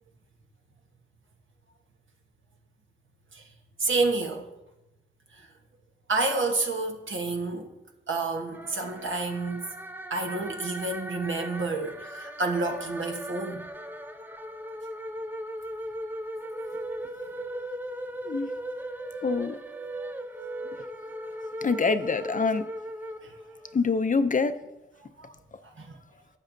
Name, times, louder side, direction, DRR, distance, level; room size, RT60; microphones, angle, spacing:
voice 1, 3.8-4.5 5.3-5.5 6.1-7.7 8.1-9.6 10.1-13.7 23.2-23.3 25.2-25.3 25.6-26.0, right 3 dB, 70° right, 1.1 m, -29 dB
sound 1, 8.5-23.8, equal, 10° right, 0.5 m, -38 dB
voice 2, 19.2-19.6 21.6-22.6 23.7-24.6, left 4 dB, 40° left, 0.5 m, -25 dB
11.5 x 7.5 x 2.7 m
cardioid pair, 65°, 21 cm